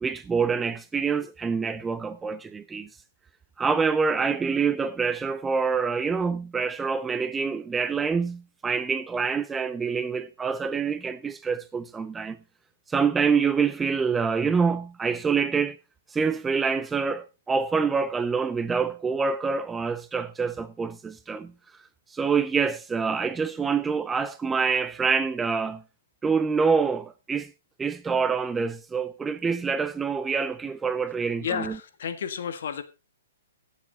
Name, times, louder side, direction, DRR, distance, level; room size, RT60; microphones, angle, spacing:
voice 1, 0.0-2.9 3.6-12.4 12.9-15.8 16.1-21.5 22.1-25.8 26.2-27.5 27.8-31.8, right 5 dB, 10° right, 0.5 m, -26 dB
voice 2, 31.4-32.8, left 7 dB, 65° left, 1.6 m, -31 dB
16.0 x 7.4 x 4.0 m
hypercardioid pair, 150°, 0 cm